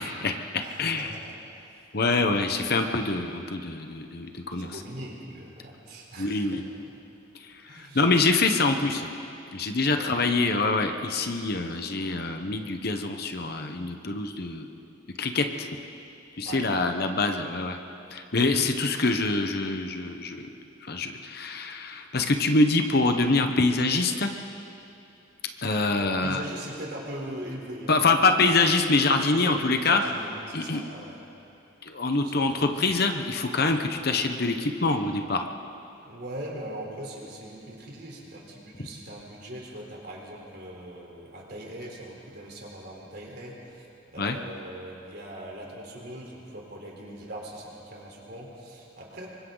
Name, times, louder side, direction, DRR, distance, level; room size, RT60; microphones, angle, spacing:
voice 1, 0.0-1.1 1.9-4.7 6.2-6.6 7.7-9.1 9.5-14.7 15.2-15.7 16.4-17.8 18.1-20.4 20.8-24.3 25.6-26.4 27.9-30.0 30.5-30.8 31.8-35.5 44.2-44.4, left 3 dB, 50° left, 5 dB, 1.1 m, -25 dB
voice 2, 0.6-1.9 2.2-2.5 4.4-6.9 7.7-8.1 9.9-10.1 16.4-16.7 26.0-28.5 29.3-31.2 32.2-32.8 33.6-33.9 36.0-49.3, right 1 dB, 50° right, -2 dB, 4.0 m, -41 dB
27.0 x 24.0 x 4.0 m, 2.7 s
head